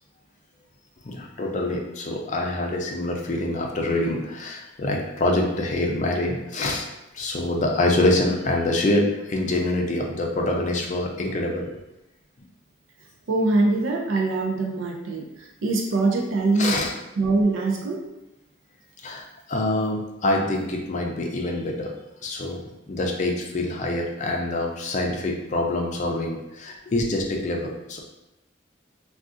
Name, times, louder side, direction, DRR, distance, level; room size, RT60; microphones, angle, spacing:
voice 1, 1.0-6.9 7.1-11.7 16.6-16.9 19.0-21.9 22.2-22.6 22.9-28.0, left 1 dB, 40° left, 0 dB, 0.4 m, -25 dB
voice 2, 13.3-16.8 17.2-18.1, right 2 dB, 80° right, 1 dB, 0.4 m, -23 dB
3.6 x 2.4 x 2.4 m, 0.92 s
head